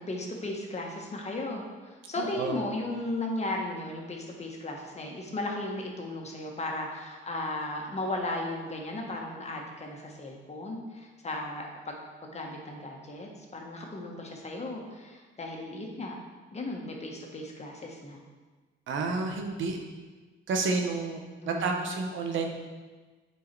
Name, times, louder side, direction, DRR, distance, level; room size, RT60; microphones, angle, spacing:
voice 1, 0.0-1.6 2.1-12.0 12.2-16.2 16.5-18.2 21.4-21.9, left 2 dB, 35° left, 0 dB, 1.6 m, -36 dB
voice 2, 2.2-2.6 18.9-19.8 20.5-21.2 21.4-22.5, right 3 dB, 75° right, 2 dB, 1.1 m, -30 dB
8.5 x 4.6 x 4.6 m, 1.3 s
cardioid pair, 90°, 20 cm